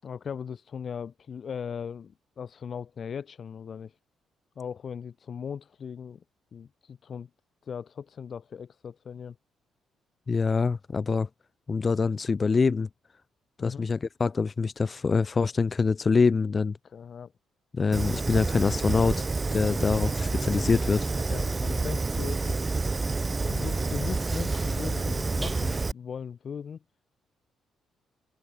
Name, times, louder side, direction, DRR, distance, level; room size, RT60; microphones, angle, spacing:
voice 1, 0.0-4.0 4.6-6.2 6.5-7.3 7.6-9.4 13.6-13.9 16.8-17.3 21.3-22.9 23.4-26.8, left 7 dB, 50° left, 6.3 m, -38 dB
voice 2, 10.3-11.3 11.7-12.9 13.6-16.8 17.7-19.2 19.5-21.1, left 4 dB, 35° left, 5.5 m, -25 dB
Fire, 17.9-25.9, right 3 dB, 25° right, 4.0 m, -28 dB
cardioid pair, 90°, 0 cm